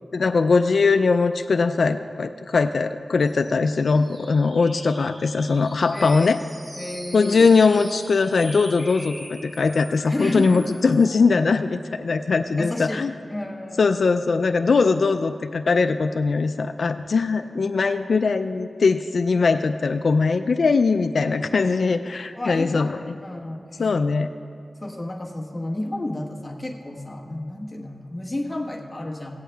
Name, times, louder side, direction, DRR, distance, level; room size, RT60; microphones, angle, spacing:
voice 1, 0.1-6.4 7.1-13.1 13.8-23.2 23.8-24.3, left 4 dB, 75° left, 7 dB, 0.3 m, -21 dB
sound 1, 3.2-11.2, right 1 dB, 60° right, 3.2 m, -42 dB
voice 2, 5.9-6.3 6.7-7.5 10.1-10.7 12.6-13.8 22.3-22.9 23.2-23.9 24.8-29.4, left 1 dB, 20° left, -1 dB, 1.3 m, -31 dB
17.5 x 8.3 x 3.4 m, 2.3 s
wide cardioid pair, 65°, 0 cm